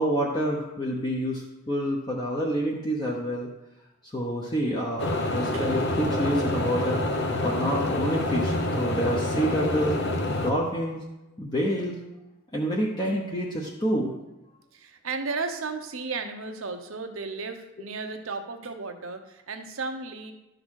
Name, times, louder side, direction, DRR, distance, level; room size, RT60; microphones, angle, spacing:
voice 1, 0.0-3.5 4.0-7.0 7.4-10.0 10.4-11.0 11.4-12.0 12.5-14.2, equal, 20° left, -3 dB, 0.8 m, -28 dB
sound 1, 5.0-10.5, left 1 dB, 55° left, 0.9 m, -27 dB
voice 2, 14.7-20.3, right 4 dB, 75° right, 6 dB, 0.9 m, -34 dB
11.5 x 3.9 x 6.4 m, 0.97 s
head